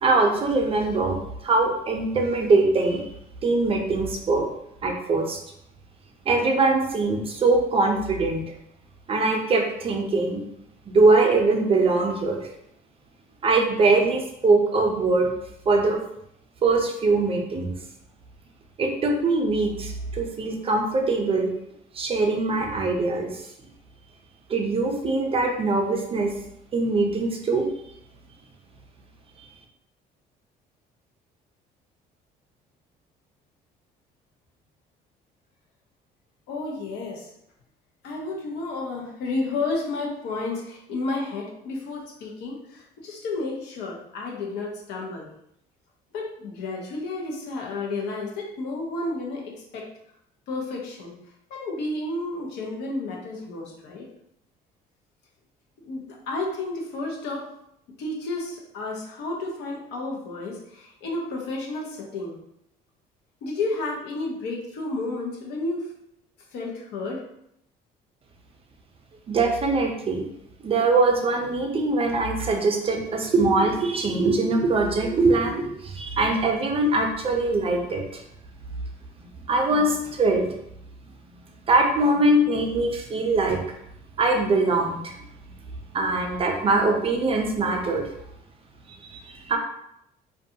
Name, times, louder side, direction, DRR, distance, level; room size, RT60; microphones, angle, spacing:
voice 1, 0.0-3.1 3.4-4.5 4.8-5.4 6.3-8.4 9.1-10.4 10.9-12.5 13.4-15.3 15.7-16.0 16.6-17.7 18.8-21.5 21.9-23.4 24.5-26.3 26.7-27.7 29.4-29.5 69.3-70.2 70.6-78.2 79.5-80.5 81.7-83.6 84.2-85.1 85.9-88.1 89.1-89.6, right 3 dB, 35° right, 2 dB, 0.5 m, -22 dB
voice 2, 36.5-37.3 38.0-45.3 46.1-49.9 50.5-51.1 51.5-54.1 55.8-57.5 58.0-62.4 63.4-65.9 66.5-67.2, left 2 dB, 85° left, -1 dB, 0.7 m, -31 dB
2.6 x 2.3 x 2.7 m, 0.77 s
cardioid pair, 110°, 17 cm